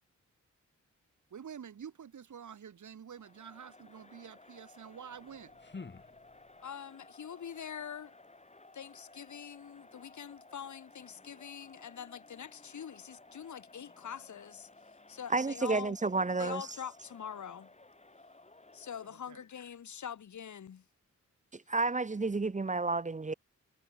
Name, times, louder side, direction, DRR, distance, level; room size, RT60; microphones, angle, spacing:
voice 1, 1.3-5.6 19.0-19.5 21.7-21.8, right 8 dB, 85° right, 3.8 m, -48 dB
Crowd, 3.1-19.3, left 2 dB, 25° left, 6.1 m, -58 dB
sound 1, 5.1-6.8, left 4 dB, 40° left, 2.7 m, -50 dB
voice 2, 6.6-8.1 8.7-14.7 15.1-16.0 16.4-17.7 18.7-20.8, left 8 dB, 80° left, 1.9 m, -44 dB
voice 3, 15.3-16.7 21.5-23.3, right 3 dB, 25° right, 0.9 m, -31 dB
wide cardioid pair, 100°, 29 cm